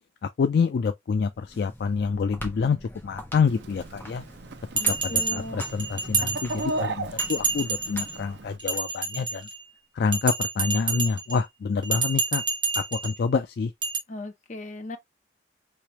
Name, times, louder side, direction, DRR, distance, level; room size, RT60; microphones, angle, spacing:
voice 1, 0.4-4.2 5.0-9.5 10.0-12.4 12.8-13.7, left 5 dB, 55° left, 0.3 m, -27 dB
sound 1, 1.3-8.8, equal, 10° left, 0.8 m, -43 dB
Chicken rooster, 3.4-8.6, right 2 dB, 60° right, 0.4 m, -36 dB
voice 2, 4.8-5.6 14.1-15.0, left 2 dB, 40° left, 0.7 m, -37 dB
Bell, 4.8-6.8 7.2-8.2 8.6-9.6 10.1-11.4 11.8-13.2 13.8-14.0, right 4 dB, 25° right, 0.9 m, -28 dB
3.3 x 2.9 x 2.9 m
head